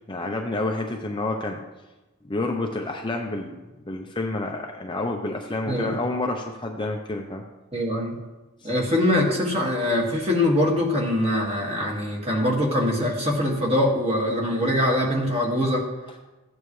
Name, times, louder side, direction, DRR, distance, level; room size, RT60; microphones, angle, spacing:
voice 1, 0.1-1.6 2.2-3.6 3.9-7.4 8.6-8.7, left 2 dB, 20° left, 2 dB, 0.6 m, -29 dB
voice 2, 5.7-6.0 7.7-8.2 8.6-15.9, left 1 dB, 25° right, -1 dB, 1.9 m, -23 dB
14.5 x 8.9 x 3.2 m, 1.1 s
head